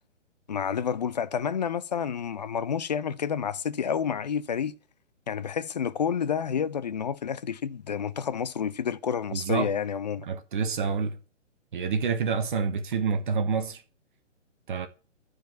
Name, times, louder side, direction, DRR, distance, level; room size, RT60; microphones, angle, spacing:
voice 1, 0.5-4.7 5.3-10.3, left 7 dB, 35° left, 0.5 m, -29 dB
voice 2, 9.3-9.7 10.3-11.2 11.7-13.8 14.7-14.9, right 5 dB, 40° right, 1.3 m, -27 dB
12.5 x 4.9 x 4.4 m
figure-of-eight pair, 135°, 37 cm